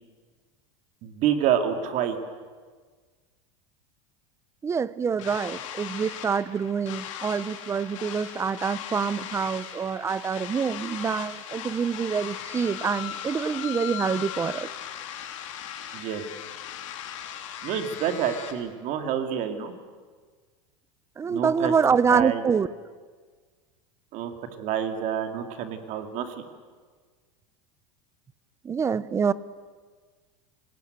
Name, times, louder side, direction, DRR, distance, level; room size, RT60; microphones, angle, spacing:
voice 1, 1.0-2.2 15.9-16.2 17.6-19.7 21.3-21.7 22.1-22.4 24.1-24.3 24.6-26.4, right 9 dB, 50° right, 6 dB, 2.5 m, -28 dB
voice 2, 4.6-14.7 21.2-22.7 28.6-29.3, right 6 dB, 15° right, 18 dB, 0.6 m, -26 dB
sound 1, 5.2-18.5, left 10 dB, 80° left, 3.1 m, -38 dB
26.5 x 18.5 x 8.2 m, 1.5 s
supercardioid pair, 140°, 16 cm